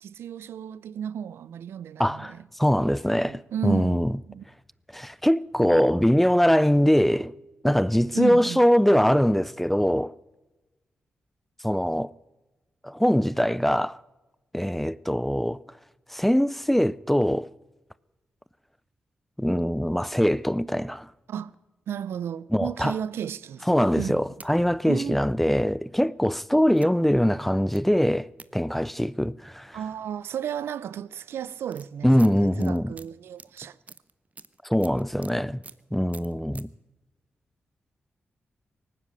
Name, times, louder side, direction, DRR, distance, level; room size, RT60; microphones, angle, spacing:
voice 1, 0.0-2.4 3.2-4.5 8.1-8.6 21.3-21.5 21.9-23.7 24.0-24.2 24.9-25.2 29.7-33.8, right 8 dB, 90° right, 0.4 m, -33 dB
voice 2, 2.0-2.3 2.6-4.1 4.9-7.3 7.6-10.1 11.6-12.1 12.8-14.0 14.5-15.6 16.1-17.5 19.4-21.1 22.5-22.9 23.7-29.8 32.0-32.9 34.6-35.6 35.9-36.7, equal, 5° left, 0.4 m, -22 dB
sound 1, 24.0-24.5 25.4-25.5 26.7-26.9 27.7-27.8 28.4-28.5 30.0-30.1 30.3-30.6 31.3-35.3 35.6-35.8 36.1-36.6, right 3 dB, 35° right, 0.7 m, -47 dB
18.5 x 10.0 x 7.6 m
cardioid pair, 65°, 4 cm